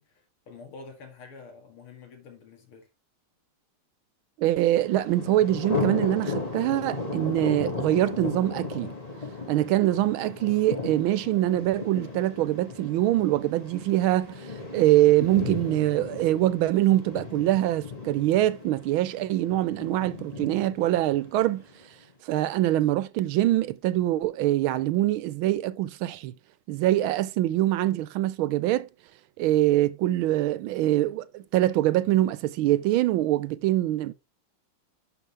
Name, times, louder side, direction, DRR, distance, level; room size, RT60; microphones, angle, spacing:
voice 1, 0.0-2.9, left 4 dB, 80° left, 2.9 m, -47 dB
voice 2, 4.4-8.9 9.5-14.5 14.7-21.6 22.2-26.3 26.7-28.9 29.4-34.1, right 14 dB, 75° right, 1.4 m, -24 dB
Thunder, 4.8-21.8, left 3 dB, 20° left, 1.8 m, -36 dB
11.0 x 5.3 x 3.3 m
omnidirectional pair, 2.4 m